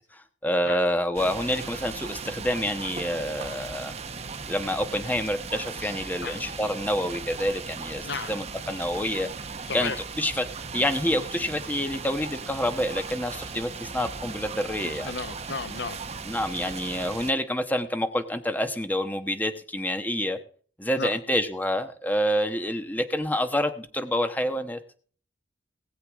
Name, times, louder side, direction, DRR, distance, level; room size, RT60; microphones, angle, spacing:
voice 1, 0.1-3.9 4.5-9.3 9.7-10.5 10.7-15.1 16.2-20.4 20.8-24.8, left 1 dB, 10° left, 1.1 m, -28 dB
sound 1, 1.1-17.3, right 4 dB, 35° right, 0.9 m, -37 dB
voice 2, 9.7-10.0 14.8-16.0 21.0-21.2, left 4 dB, 65° left, 0.8 m, -34 dB
19.5 x 8.0 x 3.6 m
head